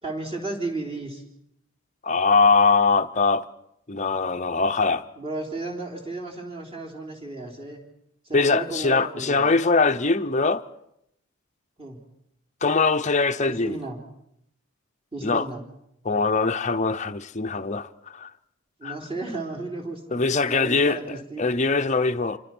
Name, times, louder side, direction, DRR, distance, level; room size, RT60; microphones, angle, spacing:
voice 1, 0.0-1.2 5.2-7.8 8.2-9.5 11.8-12.0 13.5-14.0 15.1-15.6 18.8-21.6, right 2 dB, 25° right, 4.0 m, -34 dB
voice 2, 2.0-3.4 3.9-5.1 8.3-10.6 12.6-13.8 15.2-15.5 16.0-17.9 18.1-18.3 18.8-18.9 20.1-22.4, left 4 dB, 35° left, 0.9 m, -22 dB
26.5 x 24.5 x 6.2 m
head